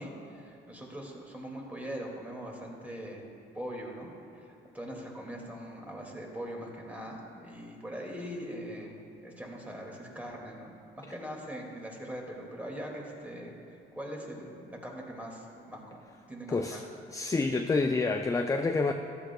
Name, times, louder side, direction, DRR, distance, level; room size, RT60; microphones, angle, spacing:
voice 1, 0.0-3.2 3.5-9.0 9.2-13.5 13.9-16.0 16.3-16.8, equal, 10° right, -1 dB, 2.2 m, -41 dB
voice 2, 16.5-18.9, left 3 dB, 15° left, 5 dB, 0.4 m, -28 dB
14.5 x 11.5 x 2.3 m, 2.7 s
cardioid pair, 90°, 20 cm